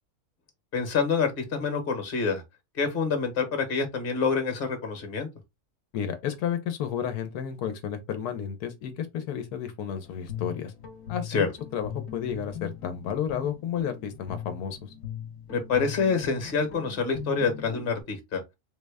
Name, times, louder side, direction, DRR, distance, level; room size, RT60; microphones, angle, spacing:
voice 1, 0.7-2.4 2.8-5.3 11.3-11.5 15.5-18.4, left 5 dB, 40° left, 1.1 m, -27 dB
voice 2, 5.9-10.7 11.1-14.9, left 8 dB, 80° left, 1.2 m, -32 dB
Guitar, 10.0-18.0, left 8 dB, 60° left, 1.2 m, -40 dB
3.8 x 2.1 x 3.4 m
omnidirectional pair, 1.6 m